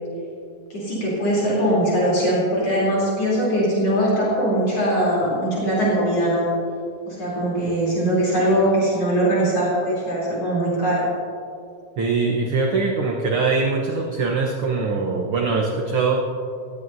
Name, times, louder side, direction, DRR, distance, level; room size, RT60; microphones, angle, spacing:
voice 1, 0.7-6.5 7.1-11.1, right 1 dB, 55° left, -7 dB, 4.3 m, -21 dB
voice 2, 12.0-16.2, right 4 dB, 60° right, 0 dB, 1.6 m, -22 dB
20.0 x 15.5 x 2.7 m, 2.4 s
omnidirectional pair, 3.4 m